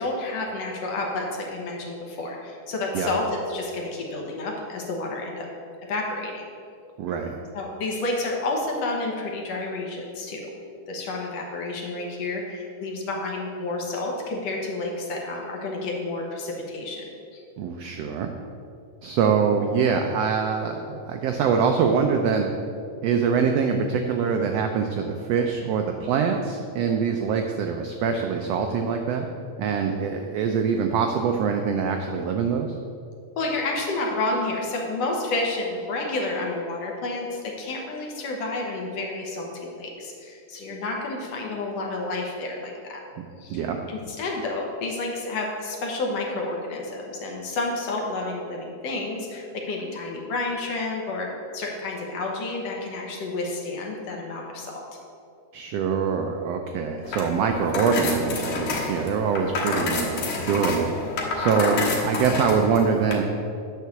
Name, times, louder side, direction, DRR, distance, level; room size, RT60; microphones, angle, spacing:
voice 1, 0.0-5.5 5.9-6.5 7.1-7.2 7.5-10.4 10.9-17.4 33.4-43.0 43.4-51.3 51.5-54.8, left 2 dB, 65° left, -1 dB, 2.0 m, -30 dB
voice 2, 7.0-7.4 17.6-18.3 19.0-22.5 23.0-29.3 29.6-32.8 43.5-43.8 55.5-60.9 61.3-63.3, right 6 dB, 85° right, 4 dB, 1.4 m, -24 dB
sound 1, 57.0-63.1, left 3 dB, 90° left, 2.8 m, -28 dB
9.4 x 4.6 x 6.9 m, 2.5 s
omnidirectional pair, 3.4 m